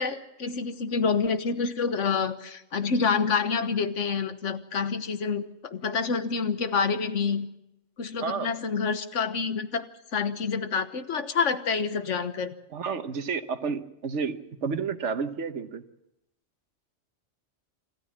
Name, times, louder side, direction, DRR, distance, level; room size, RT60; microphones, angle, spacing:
voice 1, 0.0-7.5 8.0-12.5, left 5 dB, 80° left, 10 dB, 1.5 m, -28 dB
voice 2, 8.2-8.5 12.7-15.8, right 5 dB, 75° right, 10 dB, 1.4 m, -31 dB
26.5 x 13.5 x 7.4 m, 0.86 s
omnidirectional pair, 1.2 m